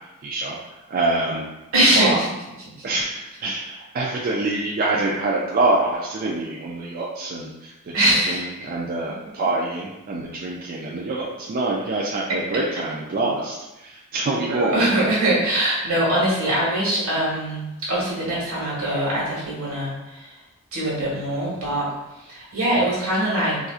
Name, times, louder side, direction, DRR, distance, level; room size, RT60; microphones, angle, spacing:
voice 1, 0.2-1.5 1.9-2.2 2.8-14.8, right 2 dB, 40° right, -3 dB, 0.3 m, -26 dB
voice 2, 1.7-2.3 7.9-8.5 14.5-20.4 20.7-23.6, right 1 dB, 75° right, -6 dB, 1.4 m, -22 dB
4.1 x 2.4 x 2.4 m, 0.99 s
head